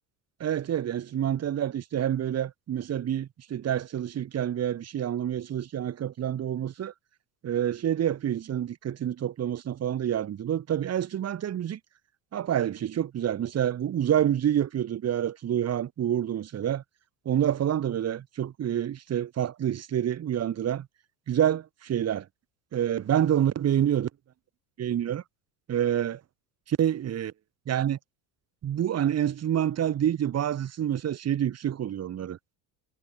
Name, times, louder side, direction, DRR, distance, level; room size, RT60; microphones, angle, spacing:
voice 1, 0.4-6.9 7.4-11.8 12.3-16.8 17.3-20.9 21.3-22.3 22.7-24.1 24.8-25.2 25.7-26.2 26.7-27.3 27.7-28.0 28.6-32.4, right 10 dB, 35° right, 2.0 m, -27 dB
cardioid pair, 120°, 43 cm